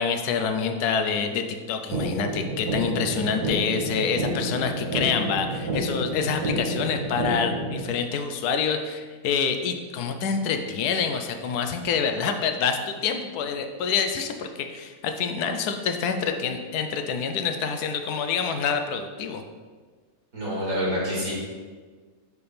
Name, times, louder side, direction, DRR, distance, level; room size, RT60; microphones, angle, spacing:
voice 1, 0.0-19.4, left 6 dB, 80° left, 6 dB, 1.1 m, -27 dB
sound 1, 1.9-7.9, right 1 dB, 80° right, 1.4 m, -29 dB
voice 2, 20.3-21.3, equal, 65° right, -6 dB, 2.4 m, -27 dB
6.6 x 3.4 x 4.2 m, 1.5 s
omnidirectional pair, 1.6 m